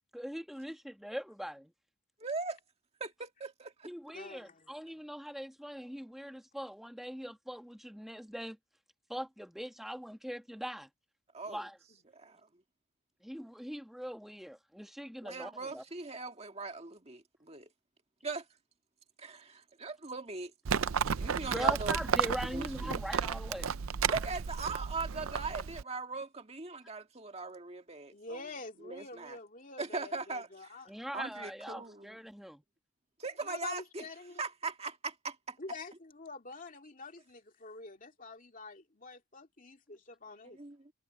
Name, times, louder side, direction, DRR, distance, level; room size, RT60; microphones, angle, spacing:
voice 1, 0.1-1.7 3.8-8.6 9.1-10.9 11.5-11.8 13.2-15.8 21.4-23.7 30.9-32.6, equal, ahead, 1.5 m, -41 dB
voice 2, 2.2-2.6 3.0-3.9 11.3-11.6 12.1-12.4 15.2-17.7 18.2-18.5 19.2-20.5 21.2-22.0 22.5-23.0 24.1-28.4 28.8-29.4 29.8-30.7 31.1-32.2 33.2-34.1 34.4-35.6 40.5-40.9, right 3 dB, 30° right, 1.8 m, -40 dB
voice 3, 4.1-4.7 28.1-30.9 33.4-34.4 35.6-40.6, left 3 dB, 40° left, 2.5 m, -47 dB
Livestock farm animals working animals, 20.7-25.8, right 7 dB, 75° right, 0.5 m, -33 dB
head